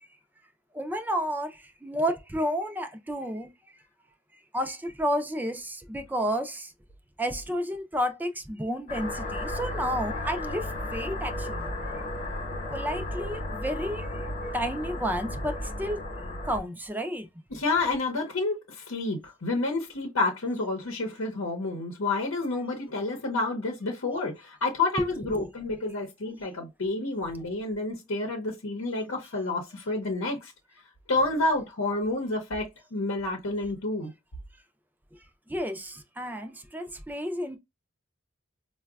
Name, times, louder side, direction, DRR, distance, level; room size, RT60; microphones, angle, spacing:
voice 1, 0.7-3.5 4.5-6.7 7.2-11.7 12.7-14.1 14.5-16.0 16.4-17.3 25.0-25.1 25.3-25.5 35.5-37.6, equal, 10° right, 0.4 m, -31 dB
sound 1, 8.9-16.6, left 1 dB, 40° left, 0.9 m, -34 dB
voice 2, 17.5-30.5 31.1-34.1, left 2 dB, 85° left, 0.8 m, -29 dB
4.7 x 2.2 x 2.3 m
head